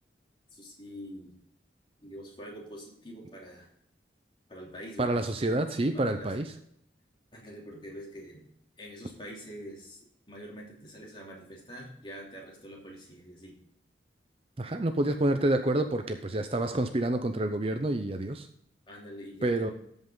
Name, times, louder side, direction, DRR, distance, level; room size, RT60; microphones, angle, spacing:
voice 1, 0.5-1.3 2.0-3.7 4.5-5.2 5.9-6.3 7.3-8.4 8.8-13.5 18.9-19.7, equal, 30° left, -3 dB, 2.9 m, -45 dB
voice 2, 5.0-6.5 14.6-18.5 19.4-19.7, right 1 dB, 30° right, 7 dB, 0.6 m, -28 dB
13.0 x 5.5 x 3.8 m, 0.71 s
head